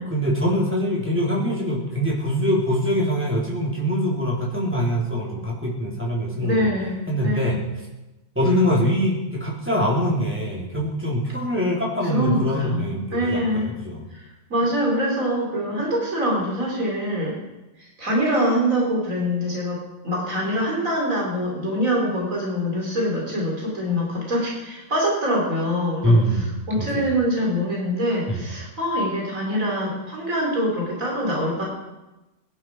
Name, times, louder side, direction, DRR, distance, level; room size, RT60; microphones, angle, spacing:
voice 1, 0.1-6.7 7.1-7.6 8.4-14.0 26.0-26.5 26.8-27.0 28.3-28.4, equal, 10° right, -4 dB, 3.7 m, -23 dB
voice 2, 6.4-7.5 12.0-13.7 14.1-17.4 17.8-31.6, equal, 90° right, -2 dB, 4.3 m, -24 dB
22.0 x 11.0 x 4.8 m, 1.0 s
omnidirectional pair, 1.4 m